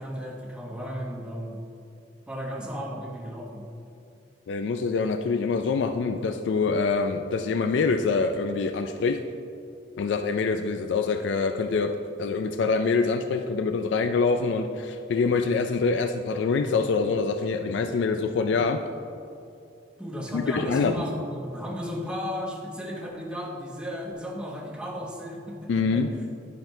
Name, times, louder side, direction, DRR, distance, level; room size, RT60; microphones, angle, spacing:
voice 1, 0.0-1.6 2.3-3.7 20.0-26.0, equal, 5° right, -1 dB, 0.8 m, -34 dB
voice 2, 4.5-9.2 10.0-11.9 12.2-18.8 20.3-21.0 25.7-26.1, left 4 dB, 75° left, 7 dB, 0.3 m, -25 dB
10.5 x 5.7 x 2.6 m, 2.5 s
head